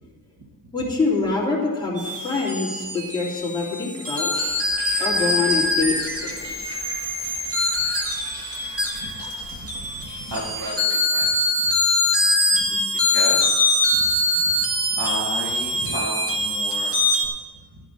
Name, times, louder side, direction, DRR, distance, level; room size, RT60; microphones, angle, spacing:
voice 1, 0.7-4.6 5.0-6.3 12.5-12.8, left 3 dB, 10° left, -6 dB, 3.0 m, -25 dB
sound 1, 2.0-17.2, left 1 dB, 35° right, 2.1 m, -23 dB
sound 2, 4.3-10.8, right 1 dB, 55° right, 2.1 m, -41 dB
voice 2, 8.3-9.1 9.5-11.8 13.1-14.5 14.9-17.3, right 1 dB, 75° right, -4 dB, 2.2 m, -34 dB
13.0 x 5.2 x 9.2 m, 1.4 s
wide cardioid pair, 175°, 40 cm